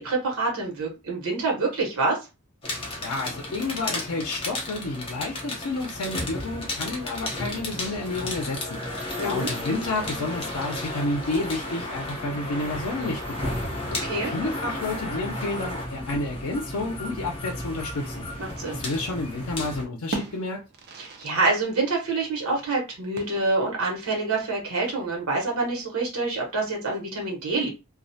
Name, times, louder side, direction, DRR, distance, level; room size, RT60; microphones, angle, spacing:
voice 1, 0.0-2.2 9.2-9.5 13.9-14.3 18.4-18.8 21.0-27.7, right 3 dB, 85° right, 1.0 m, -26 dB
sound 1, 2.6-19.8, left 1 dB, 25° left, 0.7 m, -33 dB
voice 2, 3.0-8.8 9.2-13.6 14.2-18.3 18.7-20.6, left 2 dB, 85° left, 0.5 m, -30 dB
sound 2, 19.4-19.6 19.9-21.5 21.8-21.9 23.1-23.8, right 3 dB, 50° right, 0.4 m, -38 dB
2.3 x 2.1 x 2.6 m
head